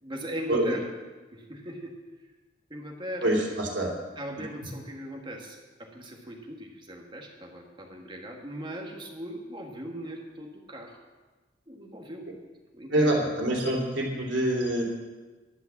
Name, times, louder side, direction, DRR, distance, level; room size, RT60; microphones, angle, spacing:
voice 1, 0.0-0.9 1.3-1.9 2.7-3.3 4.1-11.0 11.7-12.3 12.7-13.2, right 1 dB, 25° right, 1 dB, 1.8 m, -39 dB
voice 2, 3.2-3.9 12.9-14.8, right 1 dB, 75° right, -2 dB, 2.8 m, -25 dB
11.0 x 9.2 x 7.3 m, 1.3 s
head